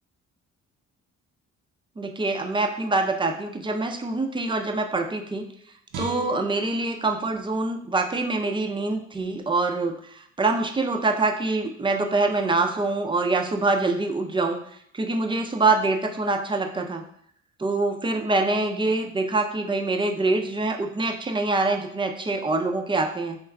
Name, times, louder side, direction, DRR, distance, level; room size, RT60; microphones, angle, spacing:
voice 1, 2.0-5.5 6.0-14.6 14.9-17.0 17.6-23.4, right 3 dB, 15° right, 4 dB, 0.4 m, -25 dB
Guitar, 5.9-9.1 9.5-9.6, right 4 dB, 90° right, 0.6 m, -40 dB
3.0 x 2.3 x 3.6 m, 0.66 s
cardioid pair, 90°, 30 cm